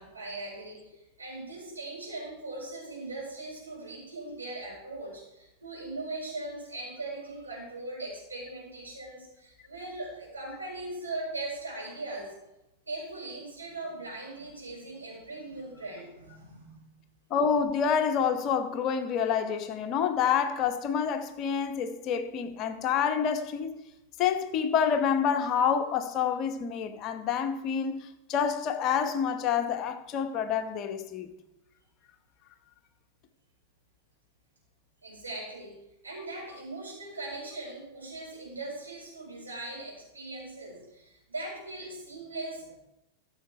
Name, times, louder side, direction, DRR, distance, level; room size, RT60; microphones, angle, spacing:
voice 1, 0.0-12.3 12.9-16.9 35.0-35.7 36.0-42.8, right 2 dB, 80° right, 5.0 m, -40 dB
voice 2, 17.3-23.8 24.2-31.3, left 7 dB, 35° left, 1.0 m, -28 dB
14.5 x 6.5 x 5.0 m
figure-of-eight pair, 90°, 0 cm